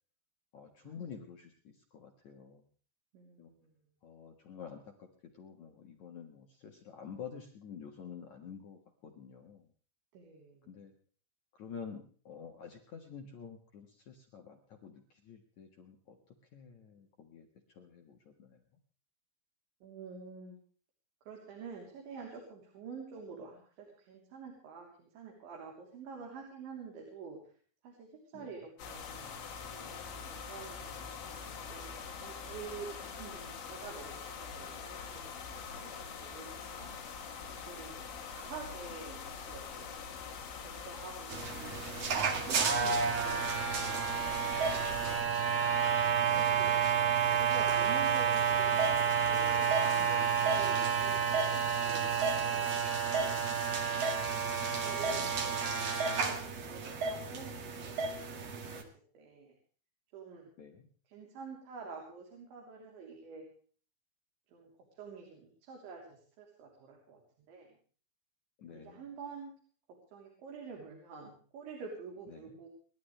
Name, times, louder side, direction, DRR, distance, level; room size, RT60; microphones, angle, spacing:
voice 1, 0.5-2.6 3.4-3.5 4.0-4.9 5.4-9.6 10.7-10.9 11.6-16.2 16.5-17.5 17.8-18.6 28.3-28.5 46.2-46.9 55.1-55.4 60.6-60.9 68.6-69.0 72.3-72.4, left 7 dB, 60° left, 3 dB, 2.1 m, -49 dB
voice 2, 3.1-3.7 10.1-10.8 19.8-20.6 21.2-27.4 27.8-29.4 29.9-31.9 32.2-36.9 37.6-38.1 38.4-40.0 40.6-41.8 42.4-45.4 46.6-46.7 47.3-51.2 51.5-54.1 54.7-58.8 59.1-59.6 60.1-60.5 61.1-63.5 64.5-64.7 65.0-67.7 68.7-69.5 69.9-72.7, right 5 dB, 75° right, 0 dB, 5.7 m, -48 dB
sound 1, 28.8-45.2, left 6 dB, 90° left, 5.1 m, -44 dB
sound 2, 41.3-58.8, right 6 dB, 50° right, 2.1 m, -30 dB
29.5 x 11.5 x 3.3 m, 0.43 s
omnidirectional pair, 5.4 m